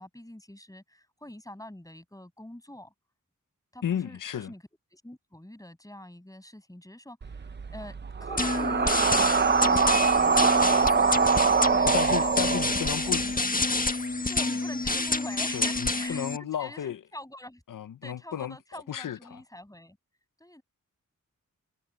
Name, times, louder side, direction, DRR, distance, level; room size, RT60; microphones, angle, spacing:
voice 1, 0.0-2.9 3.7-4.6 4.9-10.9 11.3-12.8 13.0-13.2 14.3-17.6 18.0-20.0 20.4-20.6, left 1 dB, 10° left, 6.8 m, -45 dB
voice 2, 3.8-4.5 11.9-13.4 15.5-17.0 17.7-18.5 18.9-19.4, left 10 dB, 75° left, 0.7 m, -33 dB
sound 1, 7.2-13.3, right 5 dB, 35° right, 0.6 m, -24 dB
sound 2, 8.4-16.4, left 2 dB, 25° left, 1.6 m, -28 dB
wide cardioid pair, 70°, 32 cm